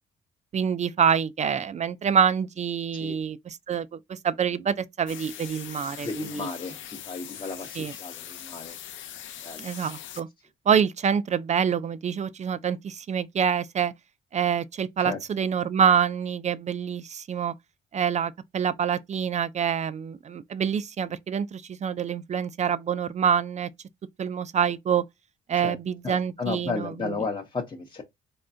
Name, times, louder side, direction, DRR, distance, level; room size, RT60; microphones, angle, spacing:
voice 1, 0.5-6.5 7.7-8.0 9.6-10.3 10.7-13.9 14.3-17.5 17.9-23.7 24.2-25.0 25.5-27.2, right 7 dB, 35° right, 0.4 m, -26 dB
sound 1, 5.1-10.2, left 10 dB, 75° left, 0.7 m, -41 dB
voice 2, 6.0-8.8 9.4-9.7 15.0-15.2 25.6-25.8 26.0-28.0, left 4 dB, 25° left, 0.8 m, -34 dB
3.6 x 3.2 x 2.6 m
cardioid pair, 90°, 20 cm